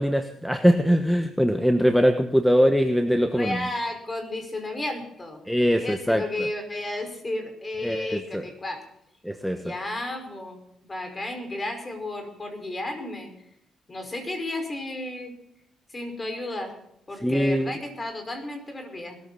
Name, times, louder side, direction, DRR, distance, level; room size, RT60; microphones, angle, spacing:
voice 1, 0.0-3.6 5.5-6.2 7.8-8.4 9.2-9.6 17.2-17.7, equal, ahead, 7 dB, 1.2 m, -22 dB
voice 2, 3.3-5.4 5.7-8.8 9.5-13.3 13.9-15.3 15.9-16.7 17.1-19.2, left 1 dB, 25° left, 6 dB, 5.2 m, -33 dB
20.5 x 14.0 x 4.2 m, 0.74 s
cardioid pair, 90°, 0 cm